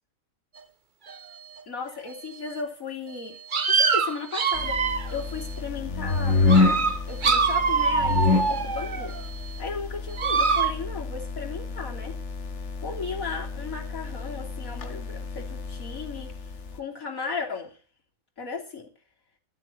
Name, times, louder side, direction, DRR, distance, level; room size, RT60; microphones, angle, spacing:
sound 1, 1.1-1.2 2.1-2.2 3.1-3.2 3.5-5.3 6.1-6.2 6.5-9.3 10.1-10.7, right 5 dB, 40° right, 1.1 m, -24 dB
voice 1, 1.7-3.4 3.7-4.8 5.1-6.4 7.1-9.2 9.6-12.2 12.8-16.3 16.7-17.8 18.4-18.9, left 5 dB, 90° left, -1 dB, 3.4 m, -35 dB
sound 2, 4.5-16.8, left 3 dB, 60° left, 1.5 m, -28 dB
12.5 x 7.8 x 7.6 m, 0.39 s
omnidirectional pair, 1.4 m